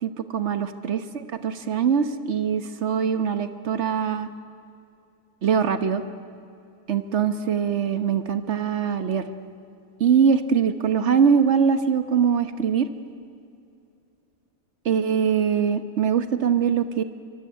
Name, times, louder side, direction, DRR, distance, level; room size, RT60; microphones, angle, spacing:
voice 1, 0.0-4.3 5.4-6.0 6.9-9.2 10.0-12.9 14.8-17.0, right 7 dB, 45° right, 9 dB, 1.3 m, -22 dB
25.0 x 22.0 x 9.5 m, 2.5 s
omnidirectional pair, 1.8 m